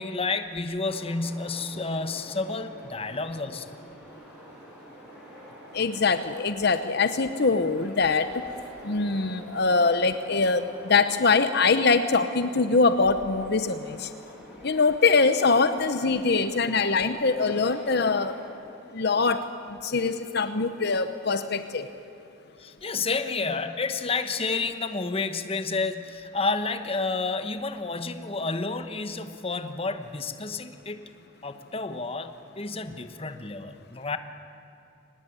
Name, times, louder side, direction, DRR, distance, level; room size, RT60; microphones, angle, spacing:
voice 1, 0.0-3.8 22.6-31.1 31.4-34.2, left 3 dB, 30° left, 9 dB, 1.1 m, -30 dB
sound 1, 0.8-18.5, equal, 5° right, 6.5 m, -47 dB
voice 2, 5.7-8.4 8.8-14.1 14.6-18.5 18.9-21.9, left 4 dB, 55° left, 10 dB, 0.9 m, -23 dB
24.0 x 19.0 x 9.9 m, 2.8 s
head